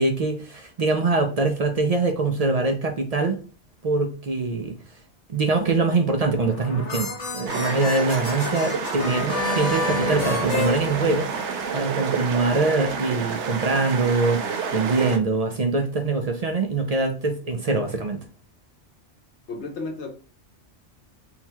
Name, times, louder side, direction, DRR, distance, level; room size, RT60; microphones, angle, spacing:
voice 1, 0.0-3.4 3.8-4.8 5.3-11.3 11.7-18.2, right 3 dB, 55° right, 0.4 m, -23 dB
sound 1, 6.3-11.7, left 2 dB, 40° left, 0.8 m, -29 dB
sound 2, 7.5-15.2, right 6 dB, 70° right, 0.9 m, -29 dB
voice 2, 19.5-20.1, left 3 dB, 70° left, 1.0 m, -32 dB
3.7 x 2.2 x 4.4 m
omnidirectional pair, 1.2 m